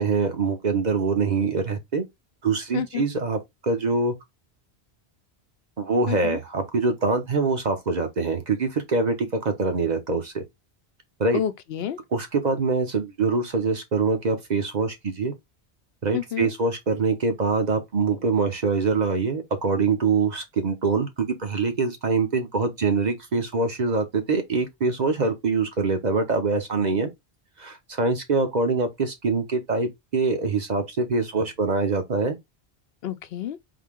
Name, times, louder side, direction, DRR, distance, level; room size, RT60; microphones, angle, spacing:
voice 1, 0.0-2.1 2.4-4.1 5.8-10.4 11.2-11.4 12.1-15.3 16.0-27.1 27.6-32.4, right 4 dB, 45° right, 0.9 m, -24 dB
voice 2, 2.7-3.1 6.1-6.4 11.3-12.0 16.1-16.5 33.0-33.6, left 10 dB, 70° left, 0.8 m, -29 dB
3.8 x 2.8 x 3.5 m
omnidirectional pair, 1.1 m